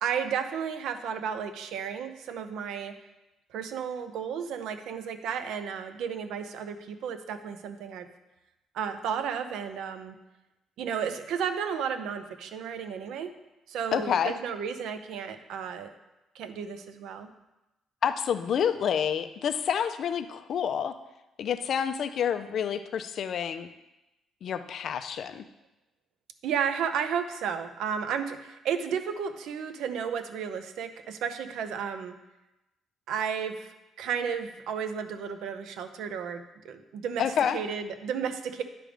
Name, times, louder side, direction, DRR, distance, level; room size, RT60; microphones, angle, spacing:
voice 1, 0.0-2.9 3.5-8.1 8.7-10.1 10.8-13.3 13.7-15.9 16.3-17.3 26.4-32.1 33.1-38.6, right 7 dB, 75° right, 9 dB, 0.6 m, -33 dB
voice 2, 13.9-14.3 18.0-21.0 21.4-23.7 24.4-25.4 37.2-37.6, left 8 dB, 50° left, 10 dB, 0.4 m, -28 dB
9.9 x 3.4 x 5.0 m, 0.97 s
cardioid pair, 160°, 0 cm